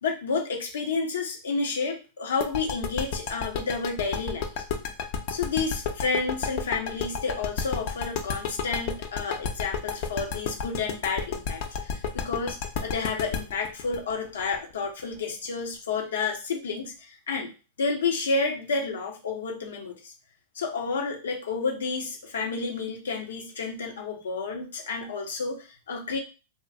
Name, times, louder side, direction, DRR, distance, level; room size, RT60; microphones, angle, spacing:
voice 1, 0.0-4.5 5.3-17.5 17.8-20.1 20.5-26.2, left 4 dB, 90° left, 1 dB, 0.9 m, -30 dB
sound 1, 2.4-15.1, left 6 dB, 55° left, 0.5 m, -31 dB
2.8 x 2.6 x 2.4 m, 0.32 s
hypercardioid pair, 125°, 0 cm